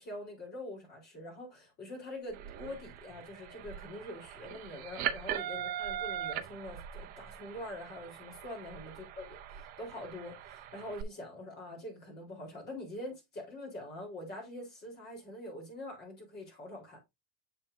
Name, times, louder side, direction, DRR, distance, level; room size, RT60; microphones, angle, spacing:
voice 1, 0.0-17.0, left 1 dB, 25° left, 3.5 m, -44 dB
sound 1, 2.3-11.0, right 10 dB, 25° right, 0.4 m, -41 dB
7.5 x 6.1 x 2.5 m
supercardioid pair, 165°, 37 cm